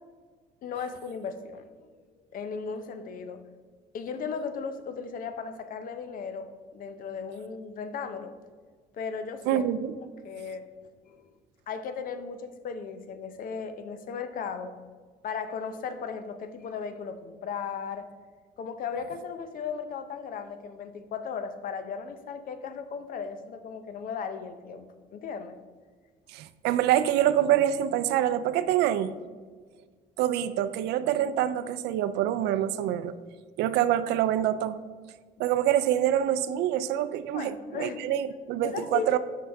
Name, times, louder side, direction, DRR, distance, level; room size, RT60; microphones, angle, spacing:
voice 1, 0.6-1.9 2.3-3.4 3.9-8.3 8.9-9.6 10.2-10.7 11.0-11.3 11.7-14.7 15.2-18.1 18.6-24.9 25.1-25.6 37.3-38.0 38.6-39.2, left 6 dB, 55° left, 9 dB, 0.6 m, -36 dB
voice 2, 9.5-9.9 26.3-29.2 30.2-33.1 33.6-34.8 35.4-39.2, right 11 dB, 85° right, 13 dB, 0.4 m, -26 dB
6.2 x 5.7 x 3.4 m, 1.5 s
cardioid pair, 110°, 17 cm